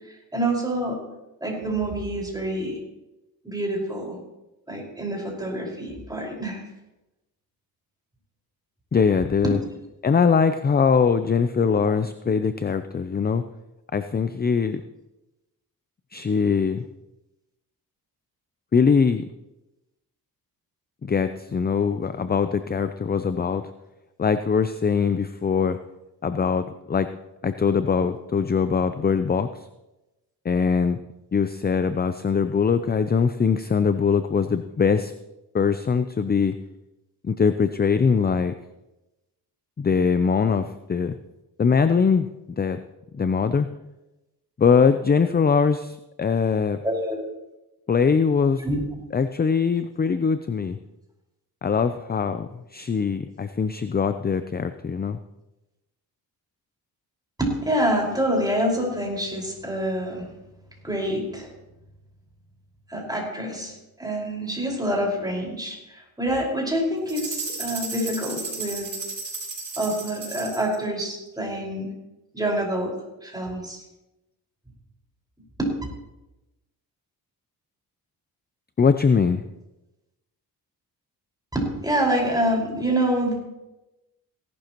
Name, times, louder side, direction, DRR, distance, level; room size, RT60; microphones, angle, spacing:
voice 1, 0.1-1.0 1.4-2.8 3.4-4.2 4.7-6.6 9.4-9.5 46.8-47.3 48.6-48.8 57.4-60.3 60.8-61.5 62.9-63.7 64.0-68.9 69.8-71.9 72.3-72.9 73.2-73.8 75.6-75.7 81.5-83.4, right 1 dB, 10° right, -1 dB, 5.2 m, -26 dB
voice 2, 8.9-9.6 10.0-13.4 13.9-14.8 16.1-16.8 18.7-19.3 21.0-23.7 24.2-25.8 26.2-27.1 27.4-29.7 30.4-31.0 31.3-35.1 35.5-36.5 37.2-38.5 39.8-41.1 41.6-42.8 43.1-43.7 44.6-46.8 47.9-48.6 49.1-50.8 51.6-55.2 78.8-79.4, left 5 dB, 25° left, 11 dB, 0.5 m, -22 dB
sound 1, 67.1-70.7, right 3 dB, 65° right, 4.7 m, -34 dB
17.0 x 11.5 x 3.0 m, 0.97 s
cardioid pair, 70°, 38 cm